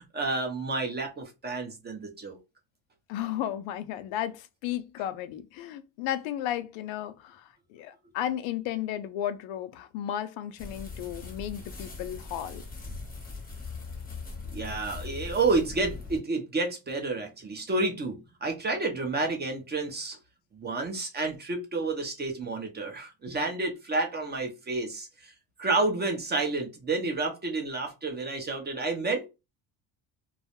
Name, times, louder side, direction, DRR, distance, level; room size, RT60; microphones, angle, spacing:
voice 1, 0.0-2.4 14.5-20.2 20.5-25.3 25.6-29.3, right 3 dB, 20° right, 0.6 m, -30 dB
voice 2, 3.1-12.6, left 11 dB, 80° left, 0.5 m, -34 dB
sound 1, 10.6-16.2, left 4 dB, 20° left, 0.7 m, -40 dB
2.3 x 2.0 x 2.8 m
cardioid pair, 115°, 46 cm